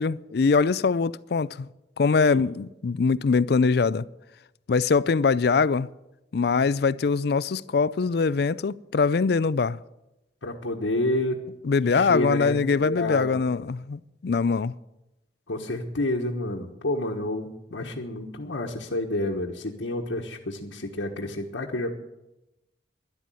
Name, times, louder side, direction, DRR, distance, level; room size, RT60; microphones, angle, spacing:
voice 1, 0.0-1.7 2.0-4.0 4.7-5.9 6.3-9.8 11.6-14.7, left 4 dB, 60° left, 0.4 m, -23 dB
voice 2, 10.4-11.4 11.8-13.4 15.5-21.9, left 1 dB, 90° left, 1.3 m, -29 dB
12.5 x 11.0 x 7.7 m
head